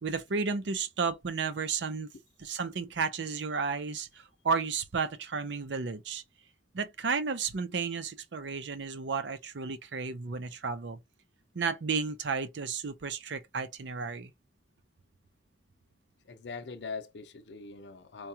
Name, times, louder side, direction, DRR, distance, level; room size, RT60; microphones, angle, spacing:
voice 1, 0.0-2.1 2.4-6.2 6.7-11.0 11.5-14.3, right 5 dB, 80° right, 0.6 m, -33 dB
voice 2, 16.3-18.3, left 4 dB, 80° left, 0.6 m, -42 dB
4.6 x 2.3 x 2.7 m
head